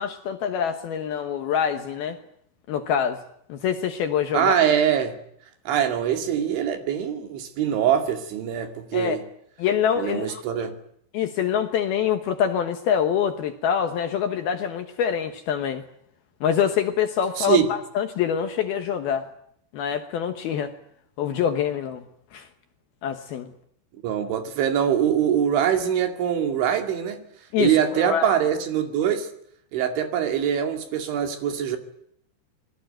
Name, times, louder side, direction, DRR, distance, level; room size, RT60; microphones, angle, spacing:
voice 1, 0.0-2.2 2.7-3.2 3.5-4.5 8.9-9.2 9.6-10.4 11.1-15.8 16.4-19.3 19.7-20.7 21.2-22.0 22.3-22.5 23.0-23.5 27.5-28.3, left 8 dB, 65° left, 7 dB, 2.6 m, -25 dB
voice 2, 4.3-5.2 5.7-9.2 10.0-10.8 17.4-17.7 24.0-27.2 27.6-29.3 29.7-31.8, right 9 dB, 70° right, 6 dB, 4.7 m, -23 dB
26.5 x 21.0 x 9.1 m, 0.70 s
omnidirectional pair, 5.6 m